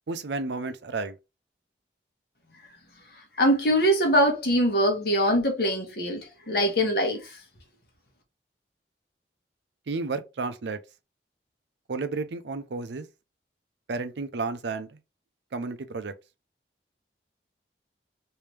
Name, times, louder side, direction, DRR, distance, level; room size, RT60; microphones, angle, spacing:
voice 1, 0.1-1.2 9.9-10.8 11.9-13.1 13.9-15.0 15.5-16.1, right 3 dB, 85° right, 0.5 m, -32 dB
voice 2, 3.4-6.2 6.5-7.4, equal, 60° left, 1.1 m, -23 dB
3.3 x 2.7 x 3.1 m
head